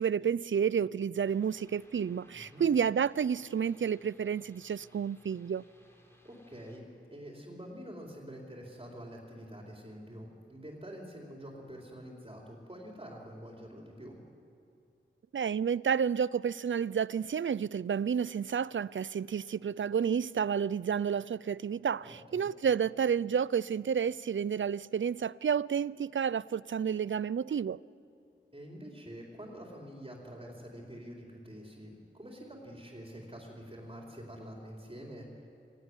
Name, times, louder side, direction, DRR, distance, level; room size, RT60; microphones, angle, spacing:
voice 1, 0.0-5.6 15.3-27.8, right 7 dB, 70° right, 0.5 m, -30 dB
sound 1, 1.3-6.8, equal, 10° left, 4.5 m, -62 dB
voice 2, 2.3-2.6 6.2-14.2 22.0-22.5 28.5-35.5, equal, 25° right, 4.5 m, -47 dB
23.5 x 17.5 x 9.8 m
wide cardioid pair, 50°, 21 cm